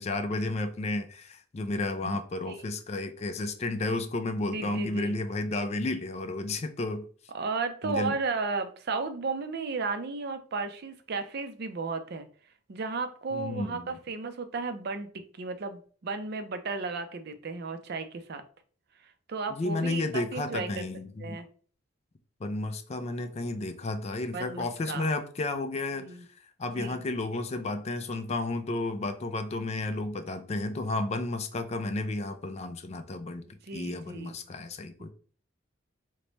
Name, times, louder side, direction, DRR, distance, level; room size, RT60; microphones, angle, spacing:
voice 1, 0.0-7.1 7.8-8.1 13.3-13.9 19.5-21.4 22.4-33.4 33.7-35.1, left 2 dB, 35° left, 0.3 m, -32 dB
voice 2, 4.5-5.2 7.3-12.3 12.7-15.1 15.4-18.4 19.3-20.8 21.2-21.5 24.3-25.1 26.0-26.2 26.7-27.0 33.4-34.4 35.0-35.1, right 4 dB, 55° right, 0.4 m, -34 dB
3.1 x 2.2 x 3.9 m
head